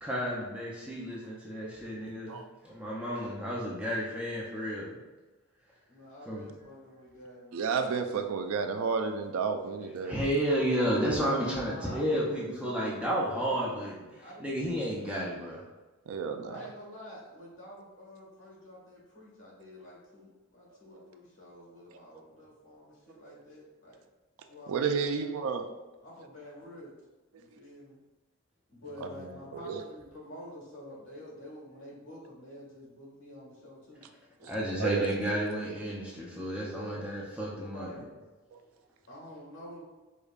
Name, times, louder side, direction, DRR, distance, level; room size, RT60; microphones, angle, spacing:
voice 1, 0.0-2.4 2.6-4.9 6.3-6.4 10.0-14.1 14.4-15.6 29.0-29.3 34.5-37.9, equal, 5° right, -5 dB, 0.5 m, -32 dB
voice 2, 5.9-7.9 11.6-13.7 14.2-14.8 16.5-24.0 24.5-25.4 26.0-26.9 27.3-28.0 28.7-34.1 34.4-34.6 36.7-37.1 37.6-38.1 39.1-39.8, left 1 dB, 60° left, -5 dB, 1.4 m, -48 dB
voice 3, 7.5-10.2 16.1-16.6 21.9-22.0 24.7-25.6 27.5-27.6 29.6-29.8 34.4-34.5 34.8-35.1, right 5 dB, 70° right, 7 dB, 0.3 m, -31 dB
4.9 x 2.2 x 2.3 m, 1.2 s
head